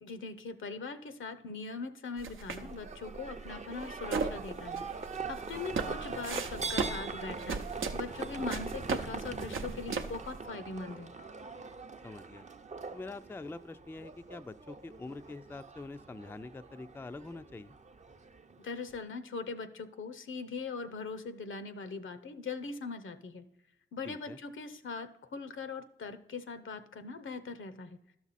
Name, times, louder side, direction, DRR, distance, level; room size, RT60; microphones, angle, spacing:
voice 1, 0.0-4.8 5.2-11.1 18.6-23.4 23.9-28.0, left 4 dB, 75° left, 10 dB, 0.7 m, -41 dB
sound 1, 2.2-10.4, right 5 dB, 85° right, 0.6 m, -37 dB
Livestock farm animals working animals, 2.5-19.0, right 4 dB, 35° right, 0.5 m, -42 dB
voice 2, 12.0-12.4 12.9-17.8 24.0-24.4, left 3 dB, 10° left, 11 dB, 0.3 m, -45 dB
12.0 x 6.0 x 4.1 m, 0.83 s
cardioid pair, 55°, 20 cm